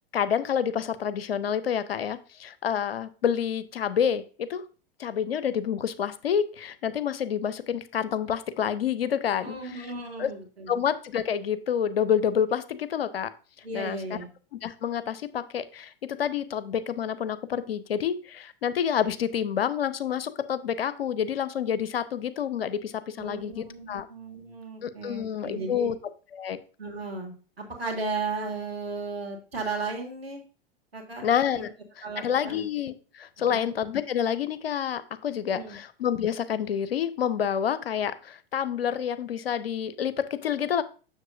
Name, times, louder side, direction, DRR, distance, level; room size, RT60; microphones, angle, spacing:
voice 1, 0.1-4.6 5.0-9.9 10.2-10.3 10.7-13.3 13.7-14.0 14.5-24.1 24.8-26.0 26.3-26.6 31.2-31.7 32.0-40.8, left 8 dB, 75° left, 14 dB, 0.6 m, -28 dB
voice 2, 9.4-10.8 13.6-14.3 23.2-25.9 26.8-30.4 30.9-31.3 31.5-31.7 32.0-32.7 33.4-33.8 35.5-35.8, right 3 dB, 85° right, 2 dB, 1.9 m, -35 dB
7.3 x 6.4 x 2.5 m, 0.36 s
figure-of-eight pair, 95°, 30 cm